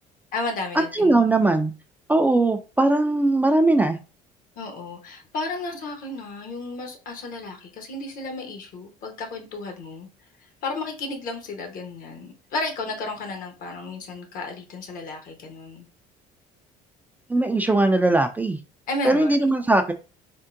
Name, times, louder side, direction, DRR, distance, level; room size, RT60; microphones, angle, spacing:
voice 1, 0.3-1.2 4.6-10.1 10.4-15.9 18.9-19.6, left 2 dB, 60° left, 1.0 m, -33 dB
voice 2, 0.9-1.7 2.1-4.0 17.3-18.6 19.0-19.9, right 2 dB, 10° right, 0.3 m, -20 dB
3.6 x 2.1 x 2.5 m
supercardioid pair, 95°, 16 cm